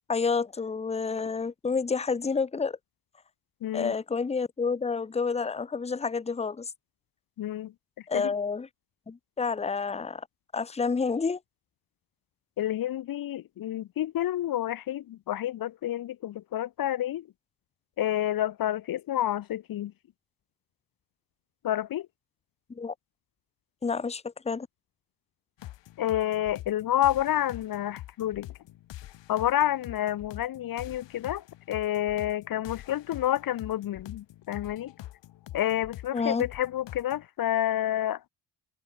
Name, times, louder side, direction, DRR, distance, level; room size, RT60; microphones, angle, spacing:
voice 1, 0.1-2.8 3.7-6.7 8.1-8.7 9.1-10.3 10.5-11.4 22.7-22.9 23.8-24.7 36.1-36.4, left 5 dB, 15° left, 1.2 m, -29 dB
voice 2, 3.6-3.9 7.4-7.7 8.1-8.3 12.6-17.3 18.0-19.9 21.6-22.1 26.0-28.5 29.3-34.9 35.5-38.3, left 12 dB, 50° left, 1.1 m, -29 dB
sound 1, 25.6-37.3, left 14 dB, 85° left, 3.9 m, -45 dB
cardioid pair, 170°, 43 cm